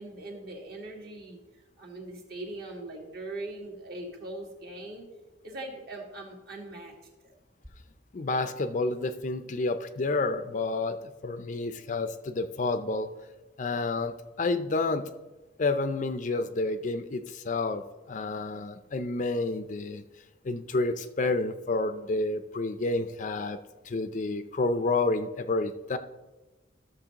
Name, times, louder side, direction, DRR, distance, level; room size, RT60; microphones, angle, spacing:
voice 1, 0.0-5.0 5.4-6.9 7.2-7.3, right 2 dB, 55° right, 0 dB, 1.9 m, -41 dB
voice 2, 8.1-13.1 13.6-15.1 15.6-20.0 20.4-23.6 23.9-26.0, left 3 dB, 40° left, 10 dB, 0.4 m, -29 dB
13.5 x 6.7 x 2.9 m, 1.1 s
head